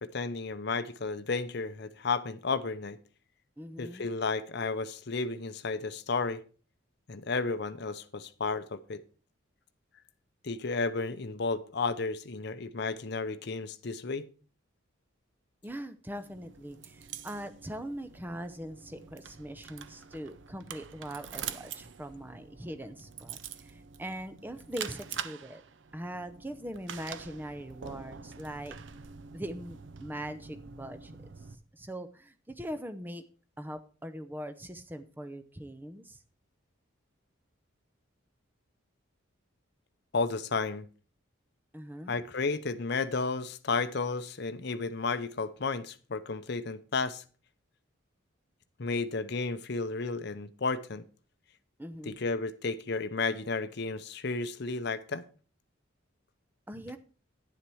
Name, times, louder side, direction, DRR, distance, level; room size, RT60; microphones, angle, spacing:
voice 1, 0.0-3.0 3.8-6.4 7.1-9.0 10.4-14.3 40.1-40.8 42.1-47.2 48.8-51.0 52.1-55.2, left 4 dB, 55° left, 0.7 m, -32 dB
voice 2, 3.6-4.1 15.6-25.6 25.9-28.8 29.3-31.2 31.5-33.2 33.6-36.2 41.7-42.2 51.8-52.2 56.7-57.0, equal, 10° right, 0.6 m, -41 dB
sound 1, 16.2-31.6, right 7 dB, 60° right, 0.6 m, -45 dB
10.0 x 7.3 x 4.7 m
head